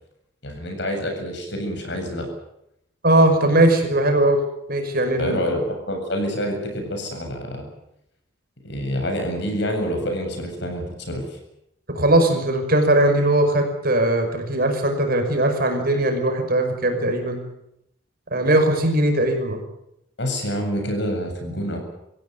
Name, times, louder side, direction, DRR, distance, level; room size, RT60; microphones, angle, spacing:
voice 1, 0.4-2.3 5.2-7.7 8.6-11.4 20.2-21.8, equal, 60° left, 4 dB, 7.9 m, -27 dB
voice 2, 3.0-4.4 4.7-5.4 11.9-17.4 18.3-19.6, right 1 dB, 50° right, 5 dB, 5.7 m, -19 dB
26.5 x 16.5 x 9.5 m, 0.80 s
head